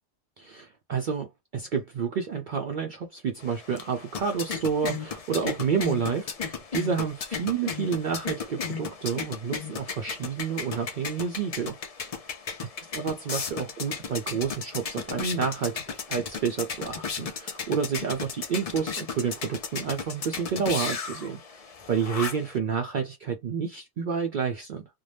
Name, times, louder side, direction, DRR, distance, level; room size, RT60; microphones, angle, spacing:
voice 1, 0.4-11.8 12.9-21.6 21.9-24.9, right 6 dB, 60° right, 0.6 m, -29 dB
sound 1, 3.4-22.6, left 5 dB, 45° left, 0.5 m, -35 dB
2.6 x 2.1 x 3.2 m
omnidirectional pair, 1.2 m